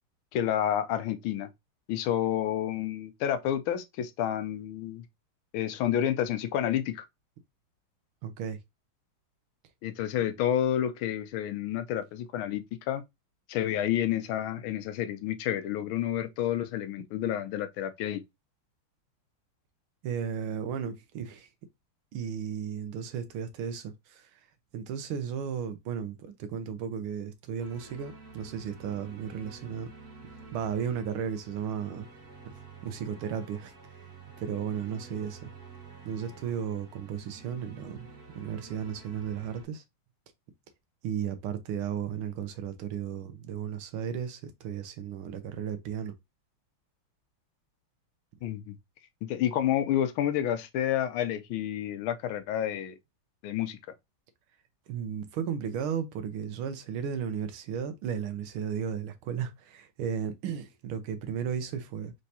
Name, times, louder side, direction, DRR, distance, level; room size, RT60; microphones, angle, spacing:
voice 1, 0.3-1.5 1.9-5.0 5.5-7.0 9.8-13.0 13.5-18.2 48.4-48.7 49.2-53.0 53.4-53.8, left 11 dB, 80° left, 1.4 m, -29 dB
voice 2, 8.2-8.6 20.0-21.5 22.1-24.3 24.7-29.9 30.5-32.1 32.8-34.1 34.4-35.5 36.0-38.1 38.3-39.8 41.0-46.1 54.9-62.1, right 8 dB, 85° right, 1.7 m, -34 dB
sound 1, 27.6-39.6, right 4 dB, 45° right, 2.3 m, -50 dB
4.6 x 3.2 x 2.7 m
omnidirectional pair, 2.3 m